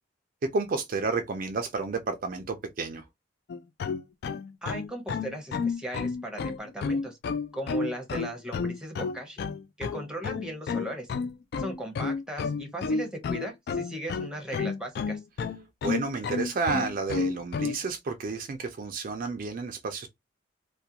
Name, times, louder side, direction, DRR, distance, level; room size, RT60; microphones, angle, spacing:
voice 1, 0.5-3.0 15.8-20.1, right 4 dB, 45° right, 0.3 m, -31 dB
sound 1, 3.5-17.8, left 5 dB, 55° left, 0.3 m, -31 dB
voice 2, 4.6-7.2 7.5-9.4 9.8-11.1 11.6-15.2, right 1 dB, 5° right, 0.7 m, -37 dB
2.3 x 2.1 x 2.8 m
head